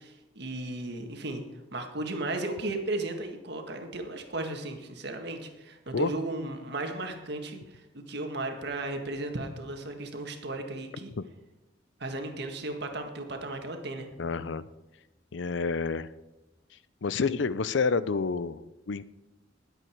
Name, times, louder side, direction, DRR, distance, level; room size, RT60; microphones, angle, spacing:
voice 1, 0.0-1.4 1.7-7.6 7.9-11.1 12.0-14.1, right 2 dB, 60° right, 4 dB, 1.8 m, -35 dB
voice 2, 14.2-14.6 15.3-16.1 17.0-19.0, left 4 dB, 70° left, 16 dB, 0.6 m, -29 dB
20.0 x 8.0 x 4.6 m, 1.0 s
head